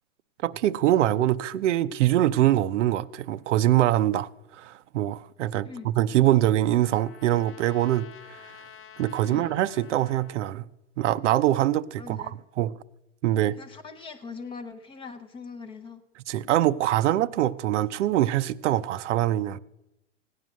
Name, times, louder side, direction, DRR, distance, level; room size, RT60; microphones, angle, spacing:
voice 1, 0.4-4.3 4.6-8.1 9.0-10.7 11.0-12.7 13.2-13.6 16.3-19.6, right 13 dB, 65° right, 0.6 m, -23 dB
Trumpet, 5.7-10.4, left 8 dB, 45° left, 1.0 m, -50 dB
voice 2, 12.0-12.3 13.5-16.0, left 4 dB, 15° left, 0.6 m, -41 dB
16.0 x 9.4 x 6.2 m
hypercardioid pair, 140°, 39 cm